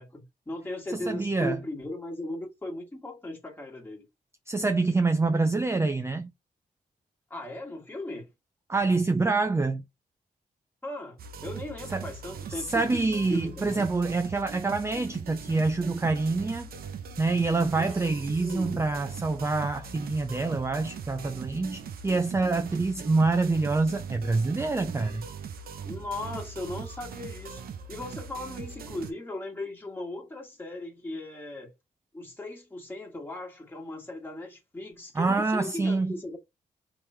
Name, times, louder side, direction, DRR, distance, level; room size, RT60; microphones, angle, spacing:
voice 1, 0.0-4.0 7.3-8.3 10.8-13.9 17.7-19.0 25.8-27.6 27.9-31.7 32.1-36.4, left 2 dB, 15° left, 1.7 m, -38 dB
voice 2, 0.9-1.6 4.5-6.3 8.7-9.8 11.9-12.1 12.5-16.7 17.2-25.3 35.1-36.2, right 3 dB, 15° right, 0.4 m, -26 dB
sound 1, 11.2-29.1, right 6 dB, 90° right, 0.7 m, -40 dB
3.6 x 3.1 x 4.3 m
cardioid pair, 110°, 15 cm